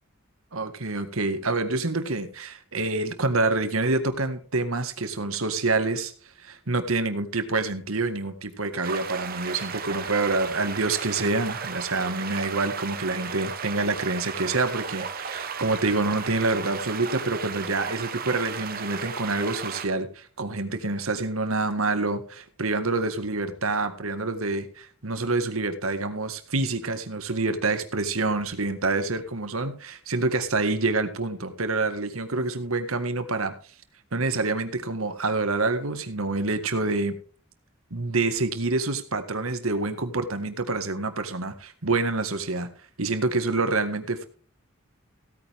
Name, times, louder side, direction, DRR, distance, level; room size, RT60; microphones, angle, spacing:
voice 1, 0.5-6.1 6.4-33.6 34.1-37.2 37.9-42.7 43.0-44.2, right 3 dB, 85° right, 9 dB, 1.8 m, -27 dB
sound 1, 8.8-19.9, right 6 dB, 45° right, 1.3 m, -35 dB
16.5 x 9.4 x 3.6 m, 0.41 s
head